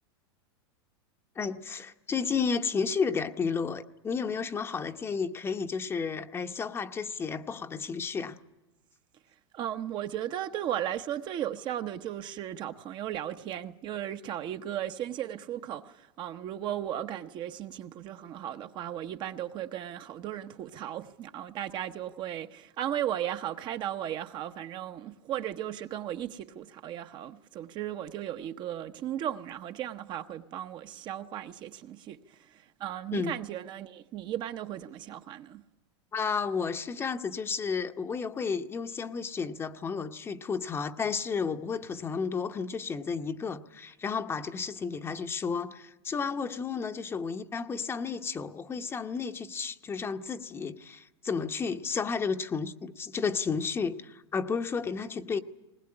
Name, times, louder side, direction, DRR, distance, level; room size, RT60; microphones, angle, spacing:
voice 1, 1.4-8.4 33.1-33.4 36.1-55.4, left 5 dB, 15° left, 0.8 m, -32 dB
voice 2, 9.5-32.2 32.5-35.6, right 11 dB, 35° right, 0.8 m, -36 dB
20.5 x 19.5 x 9.8 m
supercardioid pair, 135°, 14 cm